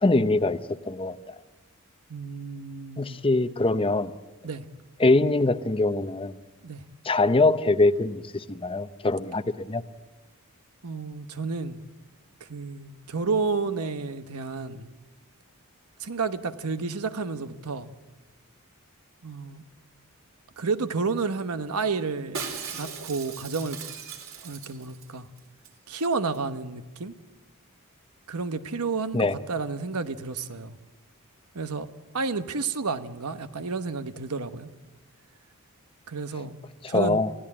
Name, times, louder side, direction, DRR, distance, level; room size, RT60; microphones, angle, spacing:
voice 1, 0.0-1.4 3.0-4.1 5.0-6.3 7.0-9.8 29.1-29.3 36.9-37.3, left 2 dB, 25° left, 0.7 m, -23 dB
voice 2, 2.1-3.2 4.4-4.6 6.6-6.8 10.8-11.8 12.4-14.9 16.0-17.9 19.2-19.6 20.6-22.4 22.7-23.8 24.4-25.3 25.9-27.1 28.3-30.8 31.5-31.9 32.1-34.7 36.1-36.6 36.9-37.2, right 4 dB, 90° right, 1.1 m, -31 dB
Shatter, 22.3-25.1 25.4-25.5 25.6-26.1 26.3-26.4, right 6 dB, 65° right, 3.7 m, -38 dB
28.0 x 16.0 x 8.7 m
head